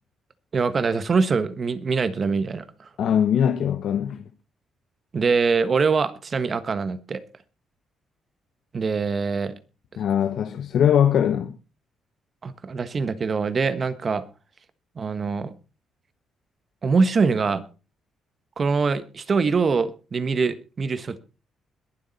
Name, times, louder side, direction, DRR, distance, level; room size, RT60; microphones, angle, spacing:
voice 1, 0.5-2.9 5.1-7.2 8.7-9.5 12.4-14.2 15.0-15.5 16.8-17.6 18.6-21.2, right 4 dB, 40° right, 1.4 m, -23 dB
voice 2, 3.0-4.2 10.0-11.5, left 9 dB, 70° left, 1.1 m, -21 dB
21.5 x 7.5 x 4.2 m
cardioid pair, 90°, 0 cm